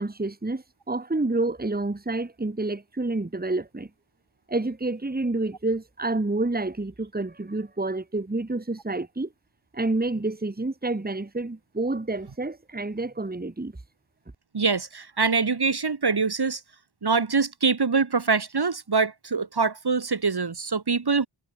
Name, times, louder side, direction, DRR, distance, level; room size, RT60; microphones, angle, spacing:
voice 1, 0.0-3.9 4.5-9.3 9.7-13.7, right 2 dB, 20° right, 1.8 m, -28 dB
voice 2, 14.5-16.6 17.0-21.3, right 4 dB, 50° right, 2.2 m, -24 dB
wide cardioid pair, 65°, 50 cm